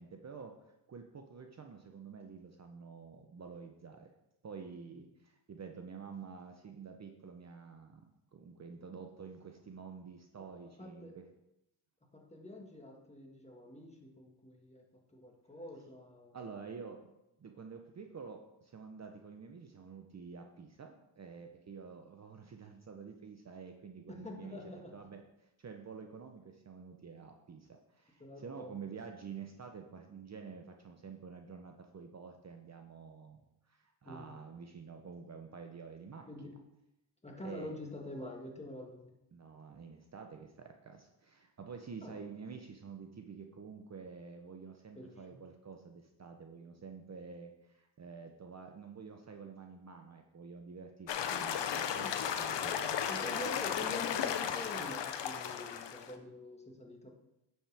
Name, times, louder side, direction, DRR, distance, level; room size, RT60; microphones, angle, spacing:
voice 1, 0.0-4.1 4.4-11.3 16.3-17.1 17.4-36.3 37.4-37.8 39.3-53.1, right 5 dB, 35° right, 4 dB, 0.8 m, -49 dB
voice 2, 10.8-11.1 12.1-16.4 24.1-24.9 28.2-28.8 34.1-34.3 36.3-36.5 37.2-39.1 42.0-42.2 45.0-45.4 52.0-52.2 53.1-57.2, left 1 dB, 15° left, 0 dB, 1.7 m, -46 dB
sound 1, 51.1-56.1, left 8 dB, 65° left, 0.8 m, -35 dB
8.8 x 7.4 x 3.5 m, 0.87 s
cardioid pair, 100°, 46 cm